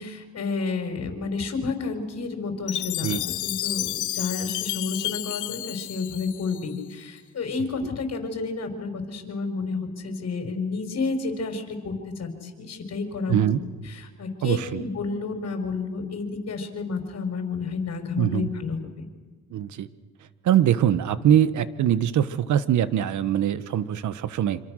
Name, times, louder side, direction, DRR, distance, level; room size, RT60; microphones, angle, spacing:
voice 1, 0.0-13.4 13.9-19.0, left 4 dB, 55° left, 5 dB, 5.2 m, -31 dB
Chime, 2.7-6.9, left 15 dB, 75° left, 0.7 m, -31 dB
voice 2, 13.3-13.6 14.4-14.8 18.2-18.5 19.5-19.9 20.4-24.6, right 10 dB, 75° right, 14 dB, 1.3 m, -22 dB
27.0 x 25.5 x 6.5 m, 1.4 s
cardioid pair, 90°, 30 cm